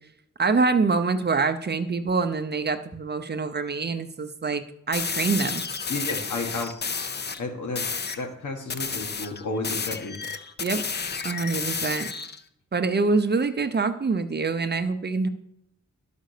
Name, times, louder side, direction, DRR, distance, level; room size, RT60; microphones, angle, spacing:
voice 1, 0.4-5.6 10.6-10.8 11.2-12.1 12.7-15.3, right 4 dB, 35° right, 8 dB, 0.7 m, -25 dB
sound 1, 4.9-7.4 7.8-8.2 8.7-12.4, left 5 dB, 35° left, 0.6 m, -31 dB
voice 2, 5.9-6.9 7.4-7.9 8.2-10.2, left 3 dB, 80° left, 3 dB, 1.9 m, -32 dB
11.5 x 5.1 x 6.6 m, 0.75 s
wide cardioid pair, 160°, 30 cm